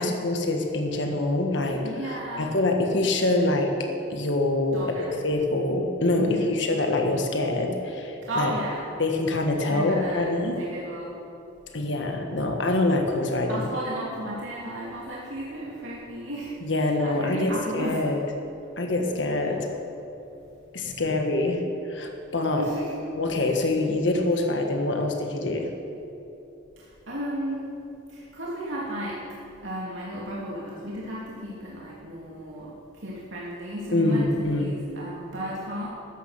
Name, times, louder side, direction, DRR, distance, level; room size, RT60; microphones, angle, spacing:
voice 1, 0.0-3.7 4.1-8.5 9.0-10.6 11.7-13.7 16.6-18.2 18.8-19.6 20.7-22.7 23.1-25.7 33.9-34.7, left 2 dB, 65° left, 3 dB, 1.5 m, -25 dB
voice 2, 1.8-2.5 4.7-5.2 6.2-6.6 8.3-8.8 9.7-11.2 13.5-16.5 16.8-18.1 19.5-19.7 20.9-21.0 22.6-23.0 26.8-27.7 28.1-29.2 29.6-35.9, equal, 85° right, -5 dB, 2.7 m, -34 dB
15.5 x 13.5 x 5.8 m, 3.0 s
head